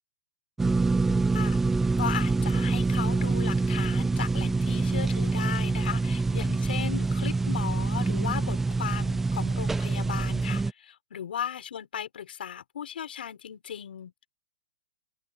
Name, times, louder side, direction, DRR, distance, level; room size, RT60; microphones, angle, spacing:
sound 1, 0.6-10.7, right 3 dB, 5° right, 0.5 m, -26 dB
voice 1, 2.0-14.3, left 9 dB, 80° left, 6.3 m, -36 dB
open air
hypercardioid pair, 160°, 5 cm